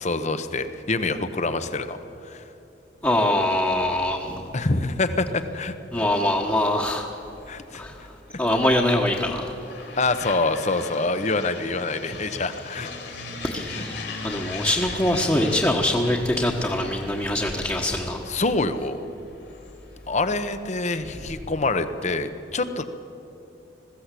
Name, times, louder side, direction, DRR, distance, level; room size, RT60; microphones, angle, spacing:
voice 1, 0.0-2.0 2.2-2.4 4.5-6.0 7.5-7.8 10.0-12.9 18.2-19.0 20.1-22.8, left 3 dB, 40° left, 10 dB, 1.1 m, -26 dB
voice 2, 3.0-4.5 5.9-7.1 7.8-8.0 8.4-9.5 13.4-14.0 14.2-18.2, left 1 dB, 15° left, -2 dB, 1.4 m, -23 dB
sound 1, 7.1-21.4, left 3 dB, 65° left, 3.5 m, -40 dB
20.5 x 15.5 x 8.4 m, 3.0 s
head